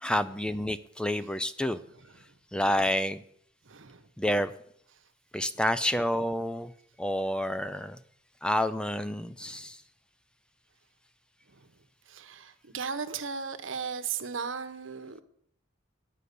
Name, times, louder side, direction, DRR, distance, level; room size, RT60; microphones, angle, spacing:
voice 1, 0.0-1.8 2.5-3.2 4.2-4.5 5.3-6.7 7.0-8.0 8.4-9.8, left 1 dB, 5° left, 13 dB, 0.4 m, -29 dB
voice 2, 3.6-4.0 5.5-5.6 9.4-9.6 11.5-11.7 12.1-15.2, right 6 dB, 80° right, 9 dB, 1.1 m, -37 dB
9.9 x 9.5 x 6.7 m, 0.65 s
head